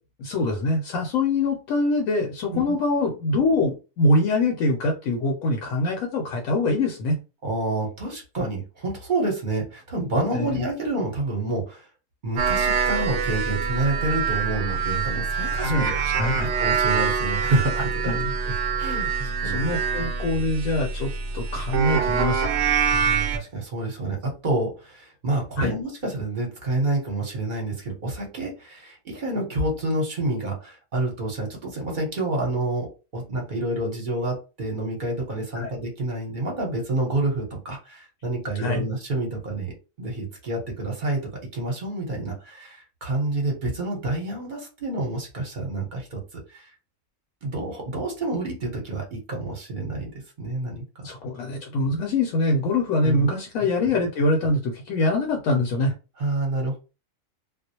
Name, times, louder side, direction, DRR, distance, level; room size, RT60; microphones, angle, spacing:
voice 1, 0.2-7.2 10.3-10.6 15.6-16.5 18.0-18.3 19.4-22.6 25.6-25.8 35.5-35.7 38.6-38.9 51.0-55.9, left 2 dB, 75° left, 1 dB, 1.0 m, -24 dB
voice 2, 7.4-11.9 12.2-15.9 16.6-19.6 22.9-32.9 33.1-39.7 40.0-41.2 41.5-46.2 46.5-46.7 47.4-50.1 50.4-51.1 53.0-53.3 56.2-56.8, right 2 dB, 40° right, -1 dB, 0.9 m, -28 dB
sound 1, 12.4-23.4, right 6 dB, 70° right, 0.8 m, -25 dB
2.4 x 2.0 x 2.7 m, 0.31 s
omnidirectional pair, 1.4 m